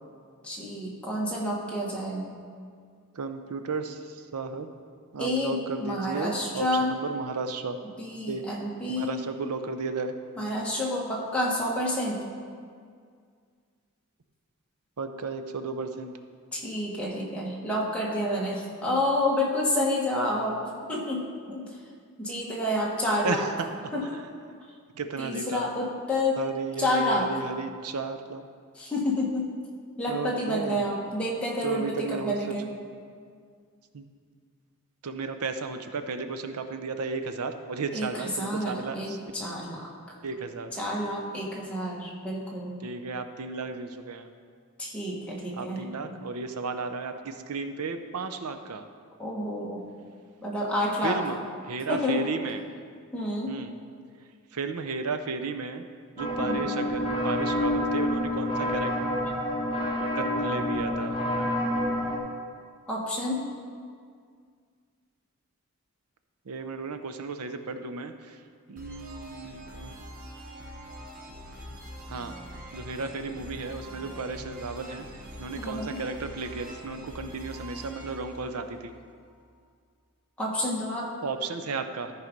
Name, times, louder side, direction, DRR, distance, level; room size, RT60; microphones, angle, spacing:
voice 1, 0.4-2.2 5.2-7.0 8.0-9.3 10.4-12.2 16.5-21.8 22.2-23.5 23.9-24.2 25.2-26.4 26.8-27.4 28.7-29.5 30.0-32.7 37.9-39.9 40.7-42.7 44.8-45.8 49.2-49.8 50.4-51.2 51.9-52.5 53.1-53.5 56.4-56.8 62.9-63.4 75.6-76.0 80.4-81.1, left 1 dB, 5° left, -4 dB, 1.3 m, -29 dB
voice 2, 3.1-4.7 5.1-7.8 8.3-8.4 9.0-10.1 15.0-16.1 23.2-23.9 25.0-25.7 26.4-28.4 30.1-30.9 31.6-32.3 33.9-34.0 35.0-39.2 40.2-40.7 42.8-44.3 45.6-48.8 51.0-51.4 51.7-52.6 53.5-53.7 54.5-55.8 56.2-58.9 60.2-61.2 66.5-68.1 68.7-69.9 72.1-72.4 72.7-75.1 75.4-78.9 81.2-82.1, right 4 dB, 85° right, 8 dB, 0.6 m, -34 dB
sound 1, 56.2-62.2, left 1 dB, 25° left, 1.1 m, -28 dB
sound 2, 68.8-79.4, equal, 40° right, 1.0 m, -44 dB
13.5 x 4.8 x 5.2 m, 2.1 s
head